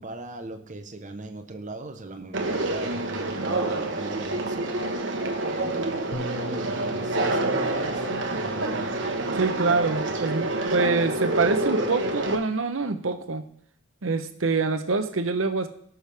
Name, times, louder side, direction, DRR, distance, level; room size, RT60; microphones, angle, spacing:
voice 1, 0.0-4.7 5.4-8.9, right 2 dB, 40° right, 6 dB, 1.0 m, -39 dB
Conversation, 2.3-12.3, right 2 dB, 65° right, 1.3 m, -27 dB
Bass guitar, 6.1-12.4, left 2 dB, 35° left, 1.0 m, -43 dB
voice 2, 9.3-13.4 14.0-15.7, right 4 dB, 90° right, 8 dB, 1.0 m, -25 dB
18.5 x 6.3 x 3.5 m, 0.67 s
head